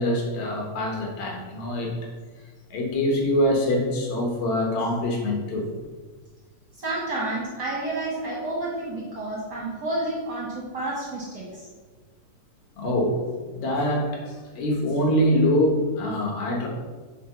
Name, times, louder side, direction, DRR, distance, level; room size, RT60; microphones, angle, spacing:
voice 1, 0.0-1.9 2.7-5.7 12.8-13.2 13.5-16.7, left 1 dB, 70° left, 0 dB, 2.4 m, -24 dB
voice 2, 6.8-11.7, right 2 dB, 45° right, -5 dB, 1.7 m, -30 dB
7.5 x 3.9 x 5.6 m, 1.4 s
omnidirectional pair, 3.4 m